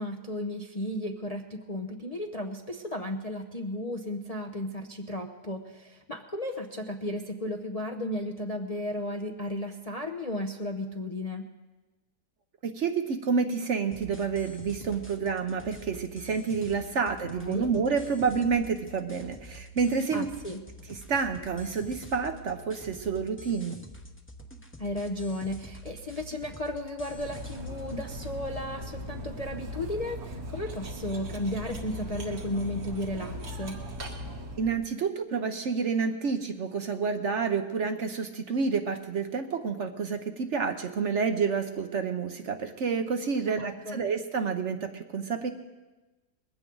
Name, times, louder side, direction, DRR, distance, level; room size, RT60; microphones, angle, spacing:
voice 1, 0.0-11.5 17.4-17.7 20.1-20.6 24.8-33.8 43.6-44.0, left 1 dB, 35° left, 3 dB, 0.6 m, -34 dB
voice 2, 12.6-20.3 20.9-23.8 34.6-45.5, right 5 dB, 55° right, 7 dB, 1.0 m, -29 dB
sound 1, 13.9-28.3, equal, 10° left, 0.8 m, -47 dB
Cutlery silverware, 27.1-34.8, equal, 70° right, 2.2 m, -39 dB
21.0 x 16.0 x 3.9 m, 1.1 s
omnidirectional pair, 1.7 m